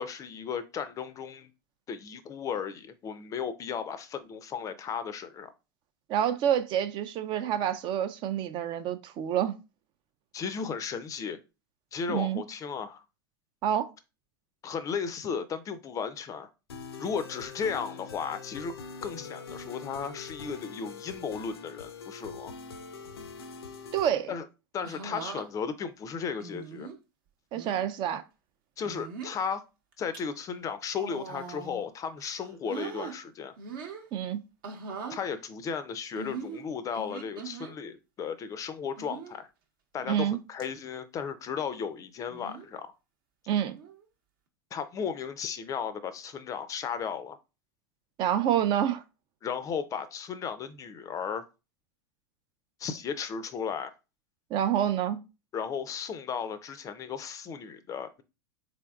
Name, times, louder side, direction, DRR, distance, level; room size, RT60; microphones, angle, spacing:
voice 1, 0.0-1.5 1.9-5.5 10.3-11.4 11.9-13.0 14.6-16.5 17.0-18.7 19.0-22.5 24.3-24.4 24.7-26.9 28.8-29.6 30.0-33.5 35.1-39.5 39.9-42.9 44.7-47.4 49.4-51.4 52.8-53.9 55.5-58.2, left 6 dB, 25° left, 0.4 m, -35 dB
voice 2, 6.1-9.6 12.1-12.4 13.6-13.9 23.9-24.3 27.5-28.2 34.1-34.4 40.1-40.4 43.5-43.8 48.2-49.0 54.5-55.2, right 10 dB, 40° right, 0.4 m, -27 dB
sound 1, 16.7-24.1, left 5 dB, 80° left, 0.5 m, -43 dB
sound 2, 24.8-25.4 26.4-27.0 27.5-27.8 28.8-29.4 29.9-30.2 30.9-31.8 32.2-33.1 33.6-34.1 34.6-35.2 36.2-37.7 39.0-39.4 40.0-40.3 40.6-40.7 42.3-42.7 43.7-44.0, right 5 dB, 60° right, 0.9 m, -41 dB
3.6 x 3.4 x 2.3 m
hypercardioid pair, 95°, 13 cm